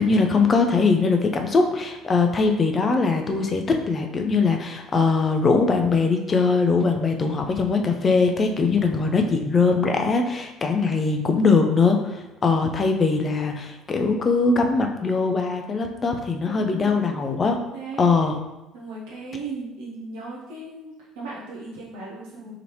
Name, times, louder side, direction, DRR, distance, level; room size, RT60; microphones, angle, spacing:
voice 1, 0.0-17.6 18.0-18.4, left 4 dB, 35° left, 4 dB, 0.6 m, -21 dB
voice 2, 16.5-18.1 18.7-22.5, right 3 dB, 70° right, -5 dB, 0.8 m, -37 dB
4.9 x 3.2 x 2.9 m, 0.98 s
hypercardioid pair, 55°, 0 cm